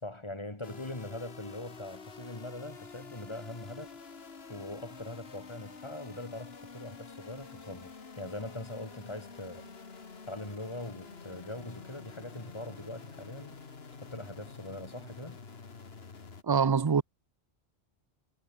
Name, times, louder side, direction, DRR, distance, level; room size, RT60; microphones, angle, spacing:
voice 1, 0.0-4.0 4.5-13.6 13.9-15.4, left 1 dB, 25° left, 2.9 m, -42 dB
sound 1, 0.6-16.4, left 5 dB, 70° left, 2.0 m, -49 dB
voice 2, 16.4-17.0, right 6 dB, 30° right, 0.4 m, -24 dB
omnidirectional pair, 1.1 m